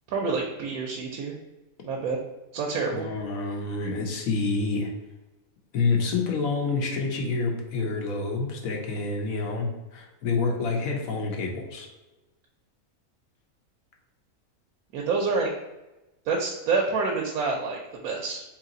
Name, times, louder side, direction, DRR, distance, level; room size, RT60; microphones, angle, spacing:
voice 1, 0.1-1.4 1.8-2.2 2.5-3.1 14.9-15.5 16.2-18.4, right 4 dB, 85° right, 0 dB, 1.1 m, -27 dB
voice 2, 2.9-4.9 5.7-11.9, left 4 dB, 70° left, 1 dB, 1.2 m, -28 dB
3.2 x 3.0 x 3.8 m, 1.0 s
omnidirectional pair, 1.5 m